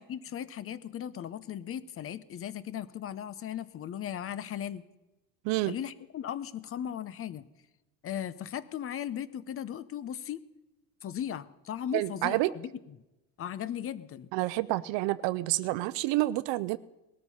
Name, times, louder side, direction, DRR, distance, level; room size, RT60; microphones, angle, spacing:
voice 1, 0.0-4.8 5.7-7.4 8.0-10.4 11.0-12.7 13.4-14.3, left 10 dB, 30° left, 17 dB, 0.7 m, -37 dB
voice 2, 5.4-5.8 11.9-12.5 14.3-16.8, right 18 dB, 70° right, 15 dB, 0.7 m, -28 dB
19.5 x 13.0 x 5.5 m, 1.0 s
cardioid pair, 145°, 44 cm